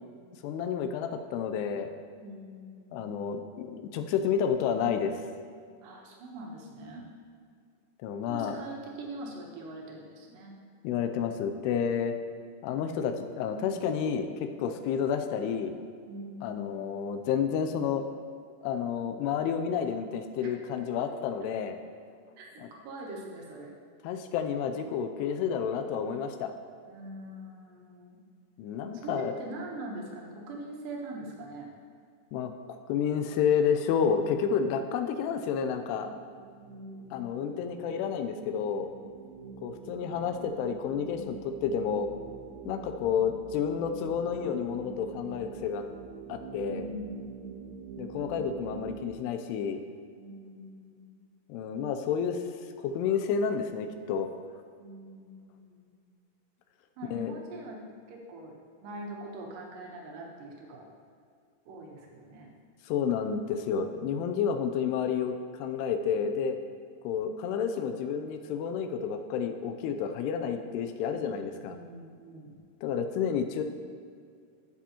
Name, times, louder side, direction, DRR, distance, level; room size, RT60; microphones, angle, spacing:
voice 1, 0.4-1.9 2.9-5.2 8.0-8.6 10.8-12.2 12.6-15.8 16.4-18.0 18.6-21.8 22.6-22.7 24.0-26.5 28.6-29.4 32.3-36.1 37.1-38.9 39.6-42.1 42.7-45.8 46.3-46.9 48.0-49.8 51.5-52.4 52.8-54.6 57.1-57.3 62.9-66.6 67.0-71.8 72.8-73.6, left 7 dB, 85° left, 7 dB, 2.6 m, -30 dB
voice 2, 2.2-3.3 5.8-7.1 8.3-10.6 16.1-17.0 20.4-20.5 21.0-21.1 22.4-23.7 26.9-28.2 28.9-31.7 36.6-37.8 39.2-39.9 46.6-47.9 50.2-51.0 54.8-55.9 57.0-57.8 58.1-58.6 58.8-60.9 61.7-62.5 71.2-72.6, right 1 dB, 70° right, -1 dB, 2.3 m, -43 dB
sound 1, 35.3-49.2, right 7 dB, 85° right, 2.7 m, -45 dB
13.0 x 6.1 x 2.9 m, 2.2 s
omnidirectional pair, 4.8 m